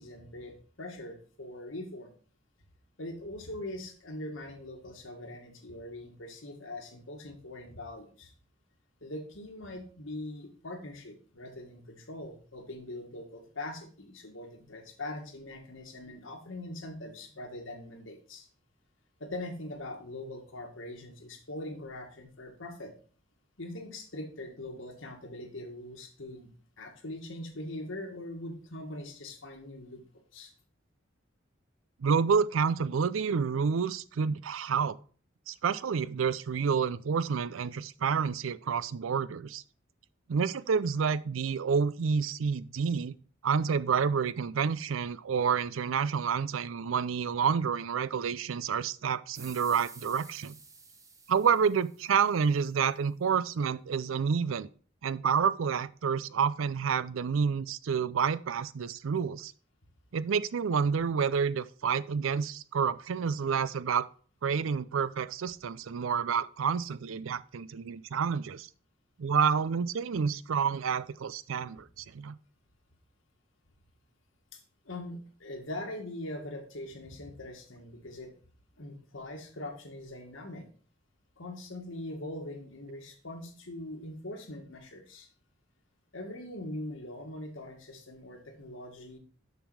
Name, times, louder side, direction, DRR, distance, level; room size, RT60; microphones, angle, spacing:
voice 1, 0.0-2.1 3.0-8.3 9.0-18.5 19.2-22.9 23.6-26.5 26.8-30.0 30.3-30.5 74.5-74.6 74.9-78.3 78.8-80.7 81.4-85.3 86.1-89.2, left 1 dB, 80° left, 1.8 m, -42 dB
voice 2, 32.0-35.0 35.5-39.6 40.3-43.1 43.4-50.6 51.3-54.7 55.0-59.5 60.1-64.1 64.4-68.7 69.2-72.4, right 6 dB, 90° right, 0.4 m, -29 dB
sound 1, 49.3-52.7, right 4 dB, 15° right, 0.9 m, -51 dB
6.7 x 6.2 x 4.8 m
head